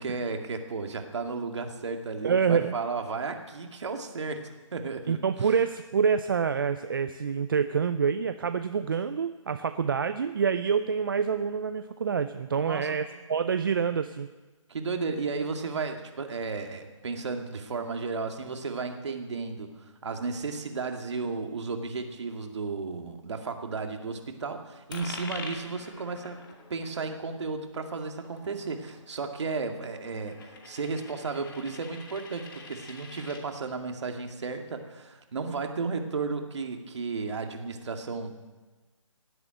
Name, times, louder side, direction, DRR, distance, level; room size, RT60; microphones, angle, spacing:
voice 1, 0.0-5.5 12.6-13.0 14.7-19.7 20.0-26.4 26.7-38.5, right 4 dB, 60° right, 5 dB, 2.2 m, -34 dB
voice 2, 2.2-2.7 5.1-14.3, right 6 dB, 40° right, 10 dB, 0.6 m, -27 dB
Coin (dropping), 24.9-33.4, left 4 dB, 40° left, 2.4 m, -46 dB
17.5 x 8.1 x 9.1 m, 1.2 s
hypercardioid pair, 165°, 17 cm